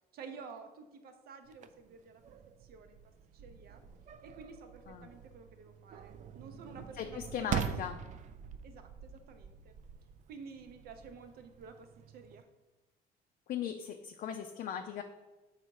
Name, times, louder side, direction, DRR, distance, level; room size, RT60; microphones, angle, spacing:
voice 1, 0.1-3.0 3.3-3.8 4.2-7.9 8.6-9.7 10.3-12.5, right 5 dB, 65° right, 7 dB, 0.7 m, -51 dB
sound 1, 1.5-12.4, right 8 dB, 45° right, 0.4 m, -44 dB
voice 2, 7.0-8.0 13.5-15.0, left 8 dB, 55° left, 5 dB, 0.4 m, -38 dB
5.5 x 4.1 x 4.7 m, 1.1 s
cardioid pair, 110°, 17 cm